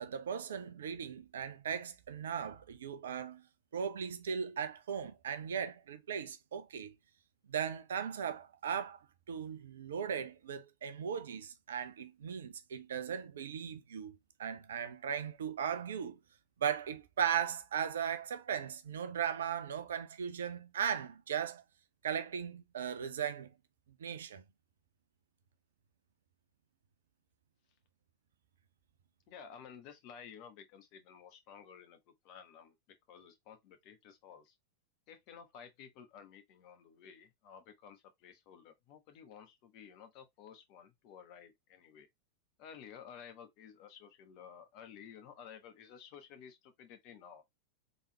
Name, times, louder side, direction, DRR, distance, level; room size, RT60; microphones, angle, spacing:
voice 1, 0.0-3.4 3.7-6.9 7.5-9.0 9.3-16.2 16.6-21.6 22.0-23.5 24.0-24.4, right 8 dB, 65° right, 0.7 m, -37 dB
voice 2, 29.3-34.5 35.1-42.1 42.6-47.4, left 7 dB, 45° left, 1.2 m, -54 dB
4.1 x 3.6 x 3.1 m
figure-of-eight pair, 90°, 0 cm